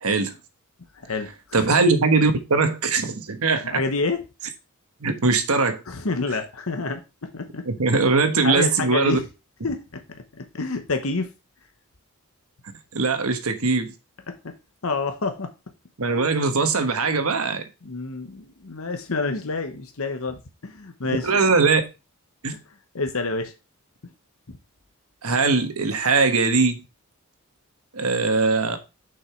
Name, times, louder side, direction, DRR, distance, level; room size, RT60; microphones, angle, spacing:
voice 1, 0.0-0.3 1.5-3.8 5.0-5.8 7.6-9.2 12.9-13.9 16.0-17.6 21.2-21.8 22.4-22.5 25.2-26.8 27.9-28.8, right 4 dB, 75° right, 1.2 m, -21 dB
voice 2, 1.0-1.7 3.7-4.2 5.9-7.7 7.9-8.0 8.4-9.3 9.6-11.3 14.3-14.5 14.8-15.5 17.8-21.5 22.9-23.5 24.5-24.6, left 3 dB, 65° left, 1.0 m, -28 dB
6.8 x 5.5 x 4.5 m
head